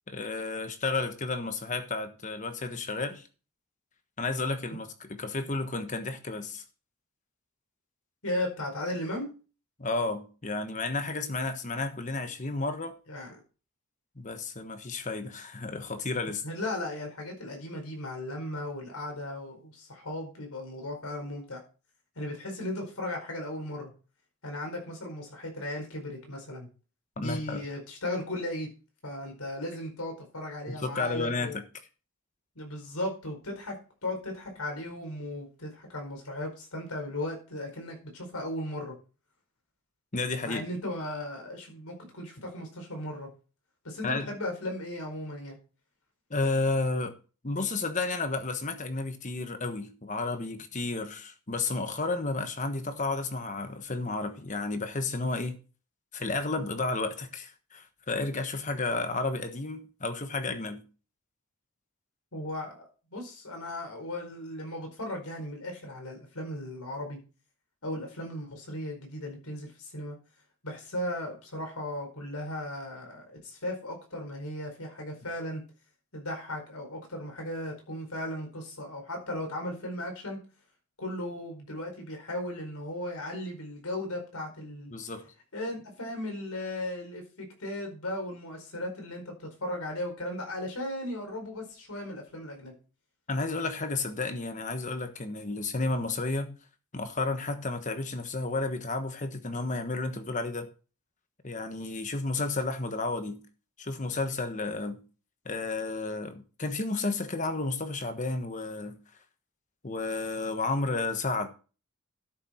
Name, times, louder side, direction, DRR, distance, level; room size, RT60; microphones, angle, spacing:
voice 1, 0.1-3.3 4.2-6.6 9.8-13.0 14.2-16.4 27.2-27.6 30.7-31.6 40.1-40.6 44.0-44.3 46.3-47.2 47.4-55.6 56.1-60.8 84.9-85.3 93.3-96.6 96.9-100.7 101.4-103.4 103.8-105.0 105.4-109.0 109.8-111.5, left 3 dB, 35° left, 1.2 m, -32 dB
voice 2, 8.2-9.3 13.1-13.4 16.4-21.6 22.1-23.9 24.4-26.7 27.2-28.7 29.0-31.6 32.5-38.9 40.4-43.3 43.8-45.6 62.3-67.2 67.8-70.2 70.6-75.6 76.1-80.4 81.0-84.9 85.5-92.7, left 1 dB, 90° left, 4.8 m, -36 dB
12.5 x 7.0 x 4.4 m
head